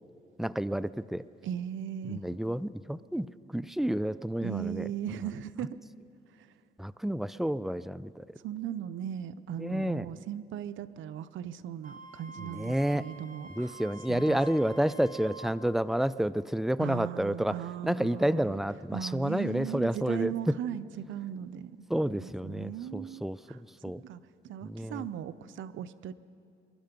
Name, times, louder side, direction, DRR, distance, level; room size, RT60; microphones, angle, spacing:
voice 1, 0.4-1.2 2.1-3.3 3.5-4.9 6.8-8.2 9.6-10.1 12.5-13.0 13.6-17.5 17.8-20.3 21.9-23.4 23.8-24.0 24.6-25.0, right 1 dB, ahead, 16 dB, 0.3 m, -30 dB
voice 2, 1.4-2.3 4.4-5.8 6.4-6.5 8.4-13.8 14.1-14.8 16.8-18.6 18.9-23.6 23.8-24.2 24.4-26.1, right 10 dB, 75° right, 14 dB, 0.6 m, -38 dB
Wind instrument woodwind instrument, 11.8-15.6, right 1 dB, 40° right, 1.2 m, -47 dB
23.0 x 11.5 x 5.2 m, 2.4 s
cardioid pair, 90°, 20 cm